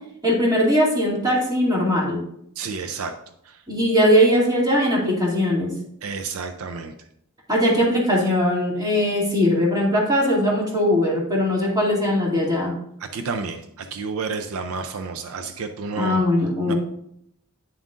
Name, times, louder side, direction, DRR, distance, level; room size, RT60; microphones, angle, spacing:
voice 1, 0.2-2.2 3.7-5.7 7.5-12.7 16.0-16.8, equal, 20° right, -4 dB, 2.4 m, -20 dB
voice 2, 2.6-3.2 3.4-3.6 6.0-6.9 13.0-16.2 16.7-16.8, right 4 dB, 75° right, 8 dB, 0.5 m, -30 dB
9.5 x 7.3 x 2.5 m, 0.75 s
head